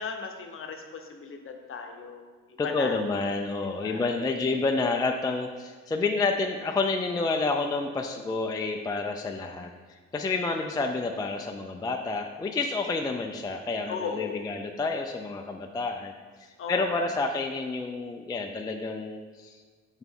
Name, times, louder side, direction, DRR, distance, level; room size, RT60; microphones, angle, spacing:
voice 1, 0.0-3.0 3.6-4.1 10.4-10.6 13.9-14.5 16.6-17.1, left 5 dB, 45° left, 4 dB, 0.8 m, -37 dB
voice 2, 2.6-9.7 10.1-16.1 16.4-19.6, left 3 dB, 15° left, 3 dB, 0.3 m, -29 dB
5.9 x 4.4 x 3.6 m, 1.5 s
cardioid pair, 90°, 30 cm